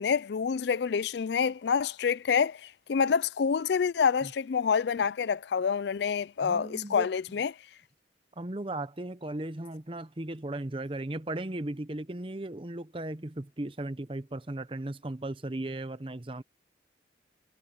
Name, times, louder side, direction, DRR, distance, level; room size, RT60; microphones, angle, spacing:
voice 1, 0.0-7.5, left 6 dB, 65° left, 0.4 m, -27 dB
voice 2, 6.4-7.1 8.4-16.4, right 1 dB, 30° right, 0.8 m, -36 dB
head